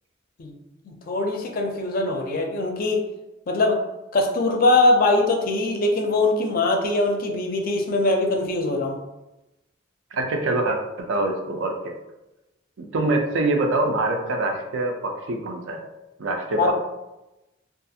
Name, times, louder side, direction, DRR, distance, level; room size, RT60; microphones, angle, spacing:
voice 1, 0.9-3.0 3.5-3.8 4.1-9.0 16.6-16.7, left 2 dB, 50° left, 3 dB, 0.4 m, -22 dB
voice 2, 10.1-11.9 12.8-15.8 16.2-16.7, right 2 dB, 75° right, 3 dB, 0.4 m, -25 dB
2.4 x 2.4 x 2.6 m, 0.98 s
head